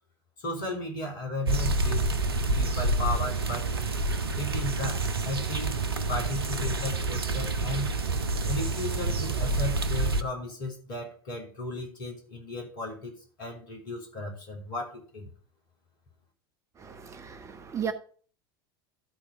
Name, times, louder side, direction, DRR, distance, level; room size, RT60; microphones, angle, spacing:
voice 1, 0.4-2.1 2.5-3.7 4.3-7.9 8.5-13.1 13.4-15.2, left 1 dB, 60° left, 3.3 m, -35 dB
sound 1, 1.5-10.2, right 2 dB, 75° right, 0.7 m, -28 dB
voice 2, 16.8-17.9, right 7 dB, 25° right, 1.0 m, -35 dB
13.0 x 4.3 x 5.4 m
figure-of-eight pair, 75°, 13 cm